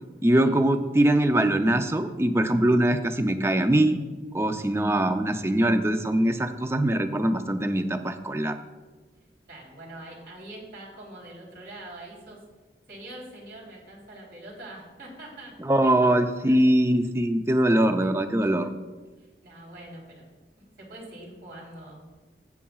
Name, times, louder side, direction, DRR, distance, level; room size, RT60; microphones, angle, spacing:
voice 1, 0.2-4.0 4.3-8.6 15.6-18.7, right 1 dB, 15° right, 8 dB, 0.4 m, -22 dB
voice 2, 4.4-5.0 9.5-12.4 12.9-16.0 18.0-18.1 18.4-18.6 19.2-20.3 20.8-22.0, right 1 dB, 75° right, -3 dB, 3.3 m, -44 dB
14.0 x 8.4 x 2.3 m, 1.2 s
head